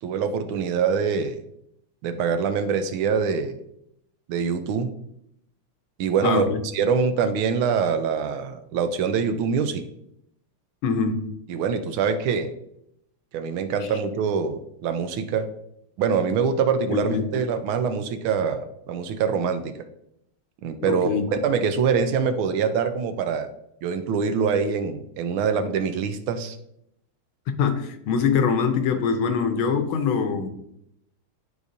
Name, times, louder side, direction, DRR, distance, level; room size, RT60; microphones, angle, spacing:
voice 1, 0.0-1.4 2.0-3.6 4.3-4.9 6.0-6.5 6.7-9.8 11.5-12.5 13.3-15.5 16.0-19.7 20.6-23.5 23.8-26.6, right 6 dB, 75° right, 1.4 m, -24 dB
voice 2, 6.2-6.6 10.8-11.3 16.9-17.3 20.8-21.3 27.6-30.5, left 6 dB, 75° left, 1.5 m, -23 dB
11.0 x 4.9 x 2.6 m
omnidirectional pair, 2.4 m